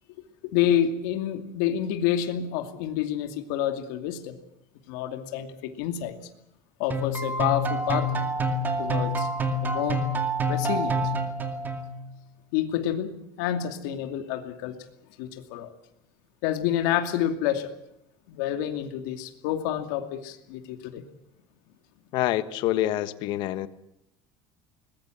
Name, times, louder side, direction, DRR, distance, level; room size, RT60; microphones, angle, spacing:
voice 1, 0.4-4.4 4.9-6.1 6.8-8.2 8.8-9.3 9.6-10.0 10.5-11.1 12.5-14.8 15.2-15.7 16.4-17.7 18.3-21.0, left 10 dB, 85° left, 7 dB, 2.5 m, -28 dB
sound 1, 6.9-12.1, right 1 dB, 20° right, 2.3 m, -27 dB
voice 2, 22.1-23.7, left 14 dB, 50° left, 13 dB, 1.2 m, -26 dB
22.0 x 20.5 x 7.9 m, 0.77 s
cardioid pair, 170°, 9 cm